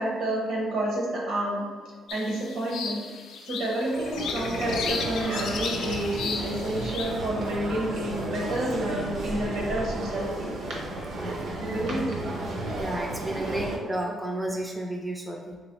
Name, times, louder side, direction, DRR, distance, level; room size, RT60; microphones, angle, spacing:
voice 1, 0.0-1.7 2.1-3.0 3.5-10.3 11.6-12.2, right 1 dB, 80° right, -4 dB, 1.2 m, -29 dB
sound 1, 2.1-7.1, left 5 dB, 75° left, 0.3 m, -35 dB
sound 2, 3.9-13.8, right 2 dB, 60° right, 0.6 m, -33 dB
voice 2, 11.1-11.6 12.7-15.6, right 1 dB, 15° right, 0 dB, 0.4 m, -32 dB
3.2 x 3.0 x 3.0 m, 1.5 s
cardioid pair, 90°, 0 cm